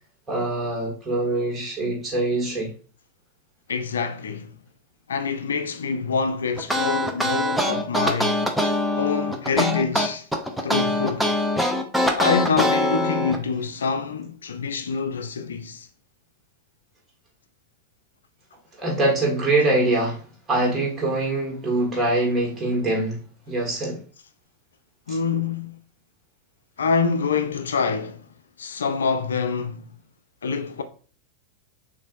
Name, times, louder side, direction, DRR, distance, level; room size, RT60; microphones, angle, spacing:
voice 1, 0.3-2.7 18.8-20.2 20.5-23.2 23.5-24.0 25.1-25.2, right 2 dB, 20° right, 1.8 m, -23 dB
voice 2, 3.7-4.5 5.1-8.4 9.0-10.3 10.6-11.4 12.1-15.9 25.1-25.8 26.8-28.3 28.6-29.8 30.4-30.8, left 5 dB, 65° left, 0.3 m, -26 dB
sound 1, 6.6-13.4, left 1 dB, ahead, 0.6 m, -23 dB
6.3 x 2.6 x 2.5 m
figure-of-eight pair, 90°, 0 cm